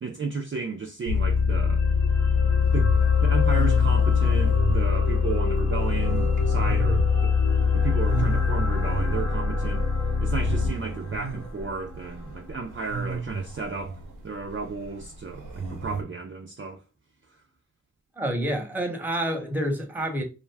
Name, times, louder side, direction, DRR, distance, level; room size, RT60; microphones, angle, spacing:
voice 1, 0.0-1.8 2.7-7.3 7.7-9.8 10.2-16.8, right 4 dB, 40° right, 0.4 m, -33 dB
sound 1, 1.1-10.7, left 5 dB, 85° left, 1.0 m, -22 dB
sound 2, 1.3-13.6 14.0-14.1, left 2 dB, 60° left, 0.7 m, -37 dB
sound 3, 2.6-16.0, right 4 dB, 90° right, 0.7 m, -36 dB
voice 2, 18.2-20.2, right 1 dB, 5° right, 0.8 m, -28 dB
2.4 x 2.2 x 3.3 m
wide cardioid pair, 40°, 31 cm